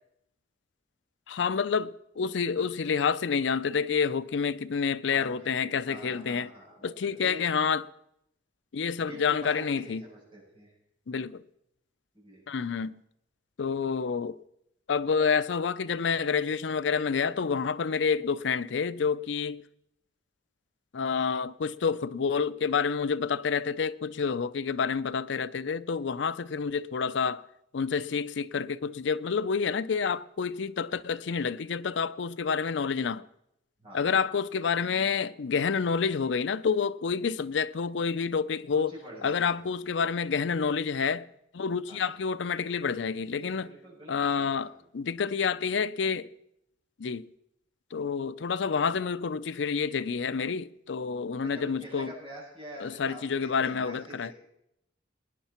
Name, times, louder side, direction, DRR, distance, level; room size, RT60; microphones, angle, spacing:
voice 1, 1.3-6.5 6.8-7.8 8.7-10.0 11.1-11.4 12.5-13.0 13.6-14.4 14.9-19.6 20.9-27.4 27.7-33.2 33.9-38.9 39.2-41.2 41.5-43.7 44.1-46.3 47.0-47.3 47.9-52.1 52.8-54.3, left 6 dB, 80° left, 0.5 m, -28 dB
voice 2, 5.1-7.5 8.9-10.7 12.1-12.4 33.8-34.0 38.7-39.7 41.9-42.2 43.3-44.7 51.4-54.4, right 1 dB, 30° right, 7.4 m, -46 dB
21.5 x 10.0 x 4.4 m
head